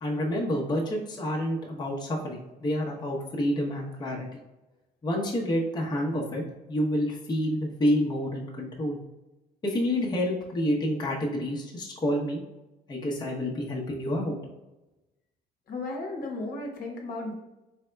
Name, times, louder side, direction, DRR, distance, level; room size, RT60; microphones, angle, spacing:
voice 1, 0.0-4.4 5.0-6.4 6.7-9.0 9.6-12.4 12.9-14.4, equal, 25° left, -3 dB, 0.8 m, -28 dB
voice 2, 15.7-17.3, left 2 dB, 60° left, 0 dB, 1.0 m, -34 dB
4.2 x 3.5 x 2.2 m, 1.0 s
cardioid pair, 110°, 17 cm